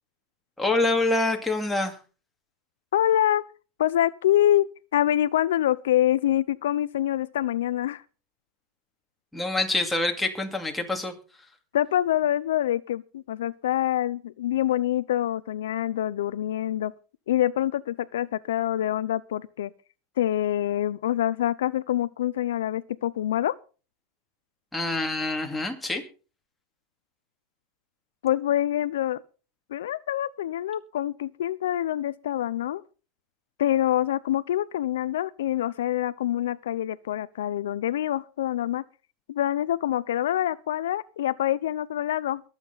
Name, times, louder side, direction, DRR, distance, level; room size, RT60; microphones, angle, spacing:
voice 1, 0.6-2.0 9.3-11.1 24.7-26.0, left 2 dB, 5° left, 2.3 m, -26 dB
voice 2, 2.9-3.4 3.8-4.7 4.9-8.0 11.7-16.9 17.3-19.7 20.2-23.6 28.2-29.2 29.7-32.8 33.6-38.8 39.3-42.4, left 12 dB, 90° left, 0.5 m, -25 dB
22.5 x 8.1 x 4.0 m
supercardioid pair, 140°, 0 cm